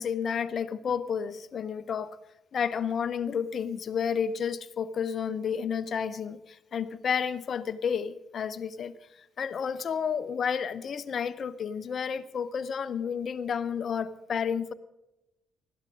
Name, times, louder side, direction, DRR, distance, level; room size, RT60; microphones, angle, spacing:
voice 1, 0.0-2.2 2.5-14.7, left 7 dB, 45° left, 15 dB, 0.8 m, -31 dB
20.5 x 14.0 x 3.9 m, 0.95 s
figure-of-eight pair, 45°, 0 cm